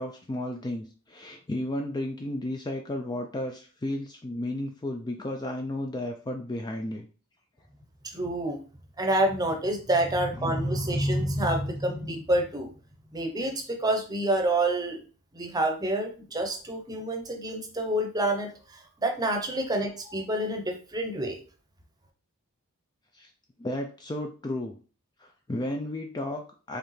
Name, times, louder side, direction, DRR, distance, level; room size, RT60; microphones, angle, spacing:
voice 1, 0.0-7.1 10.3-10.5 23.1-23.3 23.6-24.7 25.2-26.8, left 1 dB, 20° left, 4 dB, 0.4 m, -33 dB
voice 2, 8.0-8.6 9.0-12.7 13.1-15.0 15.3-21.4, right 1 dB, 15° right, 4 dB, 0.8 m, -28 dB
4.8 x 3.2 x 3.2 m, 0.37 s
head